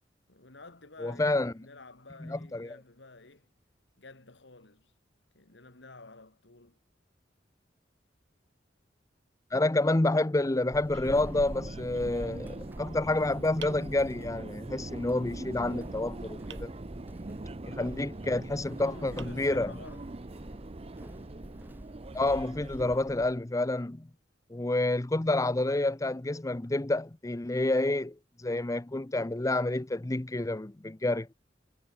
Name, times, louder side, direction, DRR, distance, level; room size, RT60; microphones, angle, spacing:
voice 1, 0.3-3.5 4.0-4.9 5.3-6.8 18.8-20.1, left 3 dB, 75° left, 2.2 m, -51 dB
voice 2, 1.0-1.5 2.2-2.8 9.5-16.7 17.7-19.7 22.1-24.1 24.5-31.3, left 2 dB, 20° left, 0.6 m, -29 dB
Walk footsteps / Squeak, 10.7-23.4, equal, 10° right, 1.2 m, -47 dB
Subway metro underground, 11.0-23.0, right 2 dB, 35° right, 0.7 m, -42 dB
sound 1, 13.6-14.6 16.5-17.4 18.6-18.7 19.2-20.1, right 9 dB, 80° right, 3.5 m, -53 dB
head